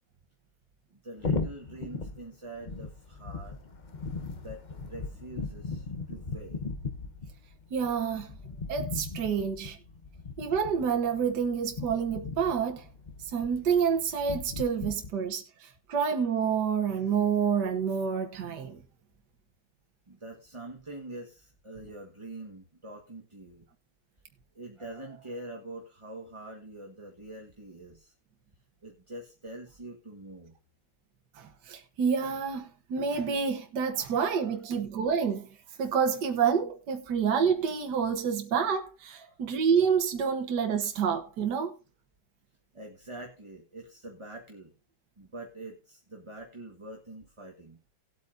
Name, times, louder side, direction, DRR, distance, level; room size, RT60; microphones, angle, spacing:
voice 1, 0.9-3.6 4.4-6.7 20.1-23.7 24.5-28.1 28.8-30.5 34.4-34.7 39.1-39.4 42.7-44.7 45.2-47.8, right 2 dB, 15° right, 1.2 m, -45 dB
sound 1, 1.2-15.1, left 4 dB, 40° left, 0.7 m, -38 dB
voice 2, 7.7-8.3 8.7-9.8 10.4-12.8 13.3-18.8 31.4-35.5 35.8-41.7, right 6 dB, 60° right, 1.8 m, -28 dB
19.0 x 8.3 x 2.6 m
omnidirectional pair, 2.2 m